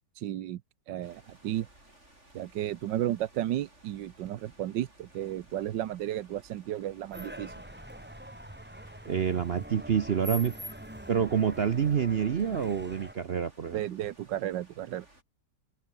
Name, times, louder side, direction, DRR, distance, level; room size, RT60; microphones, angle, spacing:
voice 1, 0.1-0.6 0.9-1.7 2.3-7.5 13.7-15.0, right 12 dB, 80° right, 1.5 m, -33 dB
sound 1, 1.0-15.2, right 1 dB, 40° right, 8.1 m, -59 dB
sound 2, 7.1-13.1, right 1 dB, 5° right, 2.1 m, -43 dB
voice 2, 9.0-10.5 11.1-13.8, right 7 dB, 55° right, 0.7 m, -27 dB
open air
omnidirectional pair, 2.0 m